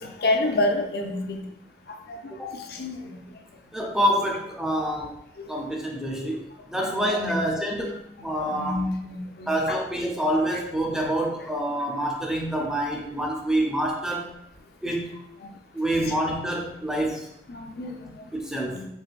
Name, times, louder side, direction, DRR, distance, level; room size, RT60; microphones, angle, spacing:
voice 1, 0.0-1.4 1.9-2.3 2.7-3.2 6.8-7.3 8.4-9.8 10.9-11.1 17.5-17.9 18.7-18.9, left 2 dB, 55° left, 3 dB, 0.4 m, -29 dB
voice 2, 3.7-5.2 5.5-6.4 6.7-7.9 8.2-8.9 9.5-14.3 14.8-15.1 15.7-17.3 18.3-18.8, right 1 dB, 5° right, -1 dB, 0.4 m, -27 dB
4.4 x 3.0 x 2.5 m, 0.79 s
head